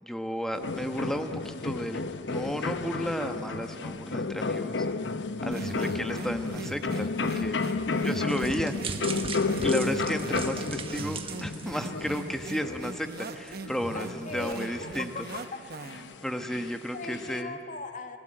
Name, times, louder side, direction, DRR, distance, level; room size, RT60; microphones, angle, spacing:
voice 1, 0.0-4.9 5.4-7.6 8.0-8.7 9.6-15.1 16.2-17.6, equal, 5° left, 6 dB, 1.2 m, -33 dB
sound 1, 0.5-17.4, left 4 dB, 80° left, 0.8 m, -33 dB
voice 2, 5.4-5.9 7.9-8.3 13.9-15.6 16.9-18.2, left 3 dB, 45° left, 7 dB, 1.3 m, -39 dB
sound 2, 5.5-16.1, right 3 dB, 60° right, 1.0 m, -40 dB
sound 3, 8.3-12.5 12.9-13.0 13.5-13.6, right 5 dB, 30° right, 1.3 m, -39 dB
29.5 x 17.0 x 8.9 m, 2.7 s
head